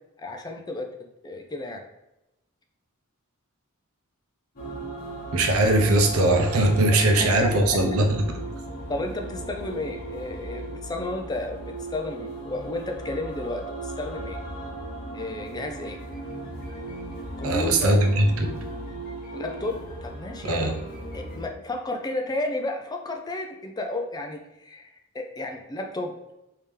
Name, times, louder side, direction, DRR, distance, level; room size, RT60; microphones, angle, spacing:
voice 1, 0.2-0.9 1.2-1.8 6.9-7.9 8.9-14.4 15.1-16.0 17.4-18.0 19.3-20.7 21.1-26.2, left 2 dB, 20° left, 4 dB, 0.3 m, -32 dB
sound 1, 4.6-21.5, right 2 dB, 40° left, 0.9 m, -37 dB
voice 2, 5.3-8.2 17.4-18.5 20.4-20.8, right 1 dB, 85° right, 3 dB, 0.6 m, -20 dB
3.4 x 2.8 x 3.2 m, 0.90 s
head